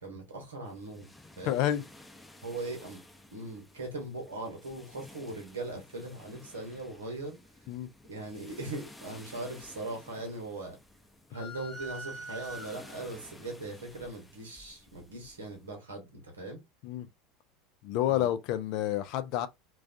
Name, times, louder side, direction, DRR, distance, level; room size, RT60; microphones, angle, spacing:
voice 1, 0.0-1.1 1.4-1.6 2.4-3.0 3.3-7.4 8.1-10.8 11.3-16.6 18.1-18.3, right 2 dB, 80° right, 0.9 m, -40 dB
sound 1, 0.6-15.7, left 1 dB, 10° left, 0.6 m, -54 dB
voice 2, 1.5-1.8 7.7-7.9 16.8-17.1 17.8-19.5, left 12 dB, 55° left, 0.3 m, -29 dB
sound 2, 11.3-13.2, right 2 dB, 35° left, 0.9 m, -43 dB
2.3 x 2.2 x 2.4 m
hypercardioid pair, 75°, 0 cm